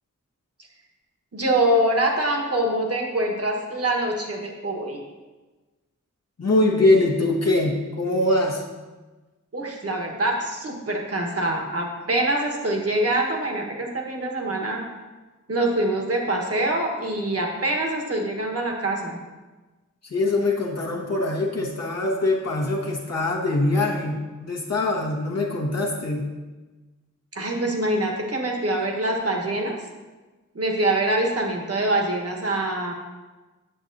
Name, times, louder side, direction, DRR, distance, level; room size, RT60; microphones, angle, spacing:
voice 1, 1.3-5.0 9.5-14.8 15.5-19.2 27.3-29.8 30.5-32.9, right 1 dB, 45° right, 1 dB, 1.3 m, -24 dB
voice 2, 6.4-8.6 20.1-26.3, left 2 dB, 50° left, -3 dB, 1.1 m, -23 dB
9.0 x 6.9 x 2.7 m, 1.2 s
wide cardioid pair, 70°, 33 cm